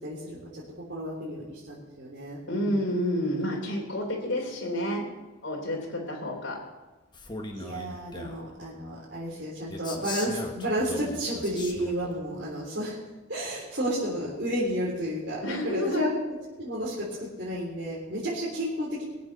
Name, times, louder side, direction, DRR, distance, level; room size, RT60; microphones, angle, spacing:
voice 1, 0.0-2.8 7.5-13.0 13.3-16.1 16.5-19.0, equal, 60° right, -7 dB, 3.7 m, -32 dB
voice 2, 2.5-5.0 5.4-6.6 12.3-12.4 15.4-16.0, equal, 65° left, -2 dB, 3.3 m, -29 dB
Male speech man speaking, 7.1-8.5 9.7-12.1, left 2 dB, 25° left, 1.4 m, -39 dB
21.0 x 8.0 x 6.8 m, 1.2 s
head